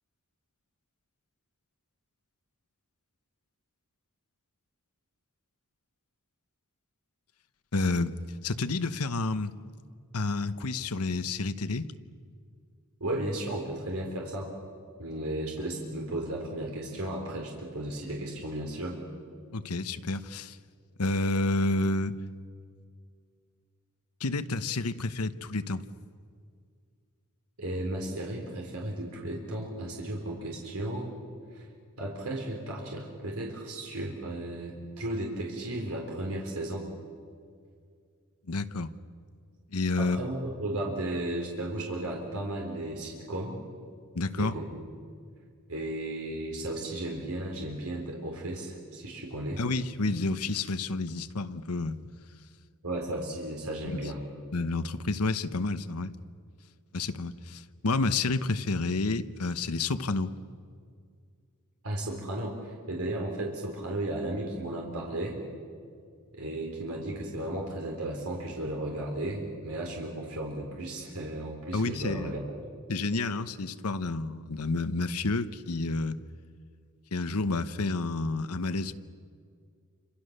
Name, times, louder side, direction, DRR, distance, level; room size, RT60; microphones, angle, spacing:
voice 1, 7.7-8.2 8.4-9.5 10.1-11.9 19.5-20.6 21.0-22.2 24.2-25.8 38.5-38.9 39.7-40.2 44.1-44.5 49.6-52.0 53.9-54.0 54.5-56.1 56.9-60.3 71.7-72.3 72.9-76.2 77.1-78.9, left 3 dB, 90° left, 12 dB, 1.0 m, -30 dB
voice 2, 13.0-14.5 15.0-18.9 27.6-31.1 31.5-31.7 32.0-36.9 40.0-43.6 44.4-44.6 45.7-49.6 52.8-54.2 61.8-65.4 66.3-72.4, right 1 dB, 80° right, -1 dB, 4.1 m, -34 dB
29.0 x 26.5 x 6.7 m, 2.2 s
head